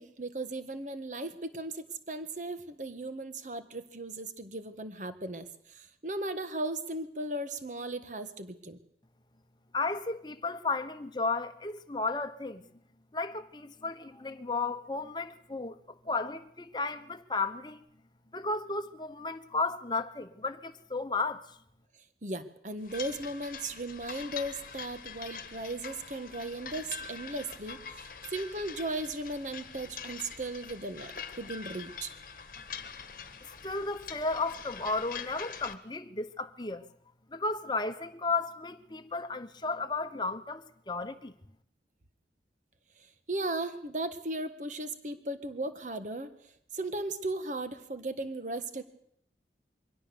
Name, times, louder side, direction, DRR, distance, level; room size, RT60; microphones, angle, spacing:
voice 1, 0.0-8.8 22.2-32.1 43.3-46.3 46.7-48.8, right 2 dB, 45° right, 1.6 m, -37 dB
voice 2, 9.7-12.7 13.1-17.8 18.3-21.6 33.4-36.9 37.3-41.3, left 3 dB, 25° left, 1.1 m, -34 dB
sound 1, 22.8-35.7, left 6 dB, 50° left, 1.4 m, -44 dB
23.5 x 17.0 x 7.0 m
head